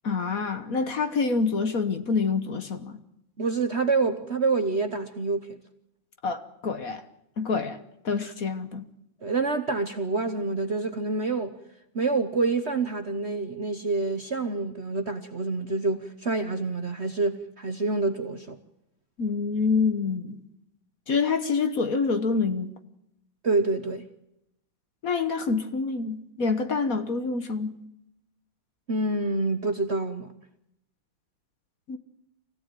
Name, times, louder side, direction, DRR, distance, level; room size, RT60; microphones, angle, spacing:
voice 1, 0.0-3.0 6.2-7.0 7.4-7.8 8.0-8.9 19.2-20.4 21.1-22.7 25.0-27.7 31.9-32.0, left 4 dB, 50° left, 1.5 m, -26 dB
voice 2, 3.4-5.5 8.2-8.3 9.2-11.6 11.9-18.6 23.4-24.1 28.9-30.3, right 3 dB, 40° right, 1.1 m, -27 dB
25.0 x 16.5 x 9.2 m
omnidirectional pair, 2.2 m